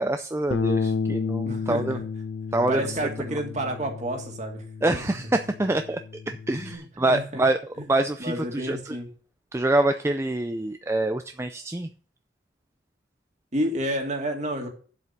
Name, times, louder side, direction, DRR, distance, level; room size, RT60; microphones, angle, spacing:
voice 1, 0.0-2.0 2.5-3.0 4.8-6.0 6.3-7.6 7.9-9.0 9.5-11.9, right 2 dB, 15° right, 7 dB, 0.4 m, -25 dB
Bass guitar, 0.5-6.8, left 5 dB, 85° left, 0.7 m, -31 dB
voice 2, 1.4-2.0 2.7-5.0 6.7-7.4 7.8-7.9 8.2-9.1 13.5-14.7, right 1 dB, 40° right, 3 dB, 2.2 m, -30 dB
8.3 x 7.7 x 5.8 m, 0.42 s
head